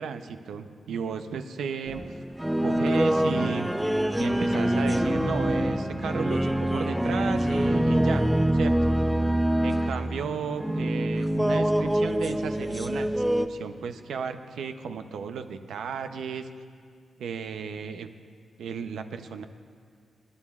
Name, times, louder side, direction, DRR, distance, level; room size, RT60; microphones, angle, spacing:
voice 1, 0.0-2.0 2.6-3.7 4.2-8.7 9.6-16.5 17.2-18.1 18.6-19.4, right 6 dB, 85° right, 8 dB, 0.6 m, -34 dB
sound 1, 1.9-13.5, right 1 dB, 5° right, 0.4 m, -25 dB
sound 2, 4.5-11.4, left 2 dB, 35° left, 0.7 m, -40 dB
27.0 x 11.0 x 2.4 m, 2.1 s
cardioid pair, 95°, 0 cm